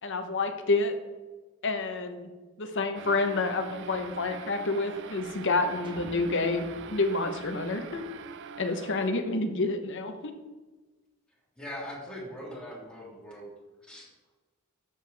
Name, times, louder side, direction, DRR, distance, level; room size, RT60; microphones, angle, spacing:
voice 1, 0.0-1.0 1.6-2.3 2.6-6.7 6.9-8.0 8.6-10.3, left 3 dB, 60° left, 7 dB, 1.0 m, -28 dB
sound 1, 2.9-9.6, right 6 dB, 60° right, 0.5 m, -44 dB
sound 2, 5.8-8.3, equal, 25° right, 1.0 m, -48 dB
voice 2, 11.6-13.5 13.8-14.1, equal, 5° left, -6 dB, 2.9 m, -41 dB
11.5 x 7.3 x 3.5 m, 1.2 s
head